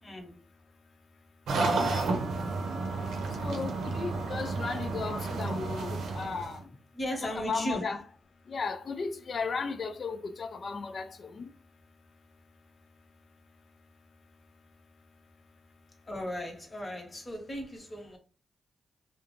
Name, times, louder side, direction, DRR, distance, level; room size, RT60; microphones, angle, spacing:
voice 1, 0.0-0.4 6.9-7.8 16.1-18.2, equal, 35° left, 1.1 m, -36 dB
sound 1, 1.5-6.6, right 3 dB, 80° right, 0.6 m, -31 dB
voice 2, 3.4-6.6 7.2-8.0 8.5-11.5, left 4 dB, 55° left, 0.4 m, -35 dB
2.4 x 2.1 x 3.1 m
cardioid pair, 60°, 0 cm